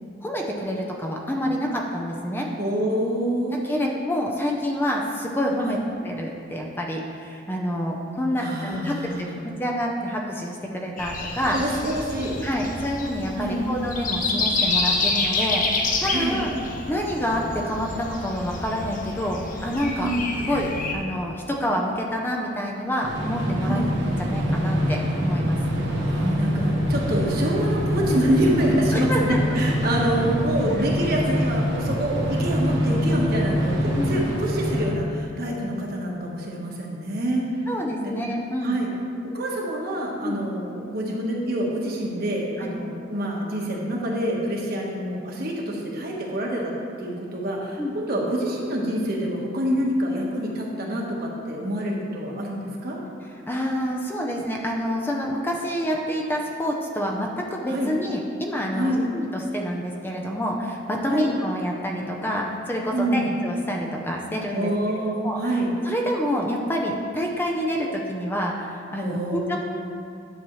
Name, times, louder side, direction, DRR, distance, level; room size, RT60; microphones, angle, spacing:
voice 1, 0.2-2.5 3.6-11.6 12.4-16.6 16.9-20.1 20.5-23.8 24.0-25.6 27.1-27.2 28.9-29.4 34.0-34.2 37.7-38.8 40.2-40.4 42.6-42.8 47.8-48.0 53.5-64.7 65.2-65.4 65.8-69.6, equal, 10° left, 0 dB, 0.6 m, -27 dB
voice 2, 2.6-3.8 5.6-5.8 8.4-9.4 11.5-12.3 13.4-13.7 16.1-16.4 20.0-20.3 23.6-23.9 25.9-37.5 38.0-38.1 38.6-38.9 39.2-46.7 47.0-53.0 57.7-57.9 58.7-59.0 61.0-61.3 62.9-63.3 64.5-65.7 69.0-69.6, right 1 dB, 55° right, -2 dB, 1.3 m, -26 dB
Breathing, 11.0-20.9, left 3 dB, 45° left, 0.8 m, -28 dB
sound 1, 23.0-34.9, equal, 80° right, 1.4 m, -24 dB
10.5 x 7.1 x 3.1 m, 2.4 s
head